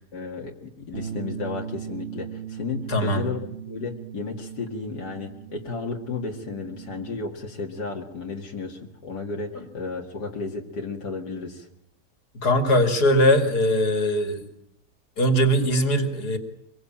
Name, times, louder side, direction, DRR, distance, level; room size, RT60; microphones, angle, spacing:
voice 1, 0.1-11.7, left 4 dB, 90° left, 0 dB, 2.7 m, -33 dB
Bass guitar, 0.9-7.2, right 8 dB, 35° right, 1.3 m, -38 dB
voice 2, 2.9-3.3 9.5-9.6 12.4-14.4 15.2-16.4, equal, 75° left, 7 dB, 3.0 m, -21 dB
25.5 x 22.5 x 8.7 m, 0.77 s
omnidirectional pair, 1.7 m